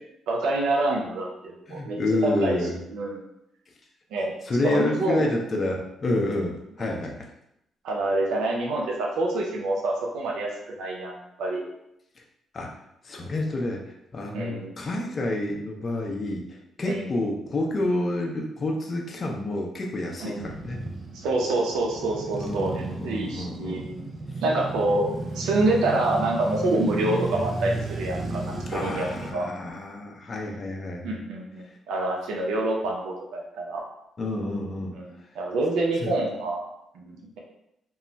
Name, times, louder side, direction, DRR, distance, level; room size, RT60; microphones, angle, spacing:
voice 1, 0.3-2.6 2.9-3.2 4.1-4.3 4.6-5.3 7.8-11.6 14.3-14.7 16.8-17.1 20.2-20.4 21.1-24.0 24.4-25.0 25.3-29.5 31.0-33.8 34.9-36.6 36.9-37.4, right 2 dB, 85° right, -1 dB, 0.5 m, -27 dB
voice 2, 1.7-2.8 4.5-7.3 12.5-12.7 13.0-13.8 14.1-20.8 22.4-23.9 28.7-31.2 34.2-35.0 36.0-36.1, left 2 dB, 40° left, 1 dB, 0.5 m, -29 dB
Male speech man speaking / Motorcycle / Idling, 20.4-29.3, right 2 dB, 35° right, 0.4 m, -33 dB
2.2 x 2.1 x 3.8 m, 0.81 s
cardioid pair, 90°, 0 cm